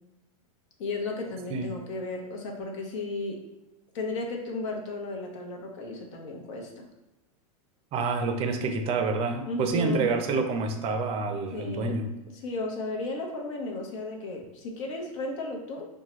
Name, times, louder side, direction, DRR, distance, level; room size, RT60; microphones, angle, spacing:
voice 1, 0.8-3.4 3.9-6.9 9.4-10.1 11.5-11.9 12.4-15.9, left 2 dB, 60° left, 1 dB, 0.9 m, -34 dB
voice 2, 7.9-12.1, right 4 dB, 35° right, 5 dB, 0.5 m, -28 dB
4.5 x 2.2 x 3.0 m, 1.0 s
hypercardioid pair, 120°, 18 cm